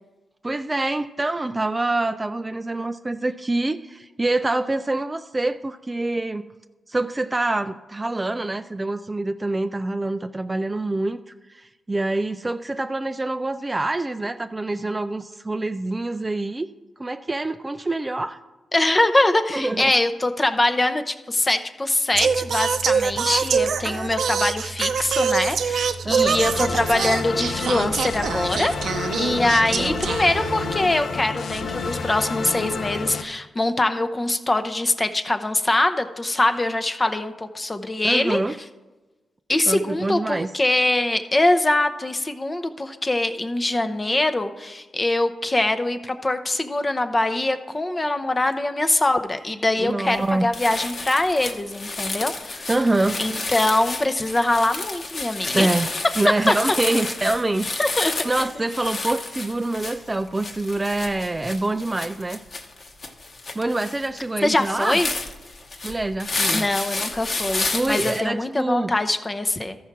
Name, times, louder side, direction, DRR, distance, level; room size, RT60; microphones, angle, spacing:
voice 1, 0.4-6.4 6.9-11.2 11.5-16.7 17.0-18.4 19.5-19.9 26.0-26.5 29.3-30.1 38.0-38.6 39.7-40.5 49.8-50.5 52.7-53.2 55.5-62.4 63.6-65.0 65.8-66.7 67.7-68.9, right 2 dB, 20° right, 10 dB, 0.3 m, -26 dB
voice 2, 18.7-28.7 29.2-38.4 39.5-52.7 53.2-55.7 56.5-56.6 57.8-58.1 58.4-58.6 64.4-65.1 66.5-69.8, left 2 dB, 20° left, 8 dB, 0.6 m, -23 dB
Singing, 22.1-30.9, right 6 dB, 75° right, 0.6 m, -25 dB
sound 1, 26.4-33.2, left 4 dB, 65° left, 0.6 m, -30 dB
sound 2, 50.1-50.3 50.5-68.2, left 3 dB, 45° left, 1.0 m, -31 dB
13.5 x 4.7 x 5.8 m, 1.2 s
cardioid pair, 95°, 0 cm